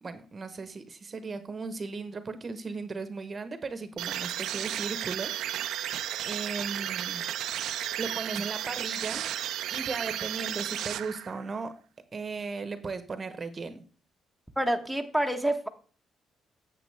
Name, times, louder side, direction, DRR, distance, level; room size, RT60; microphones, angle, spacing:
voice 1, 0.0-5.6 6.2-7.3 8.0-9.2 9.7-11.7 12.1-13.8, right 4 dB, 35° right, 10 dB, 1.0 m, -36 dB
sound 1, 4.0-11.5, right 11 dB, 85° right, 0.5 m, -33 dB
voice 2, 14.6-15.7, right 1 dB, ahead, 6 dB, 1.1 m, -27 dB
9.2 x 7.5 x 3.4 m, 0.40 s
cardioid pair, 90°, 0 cm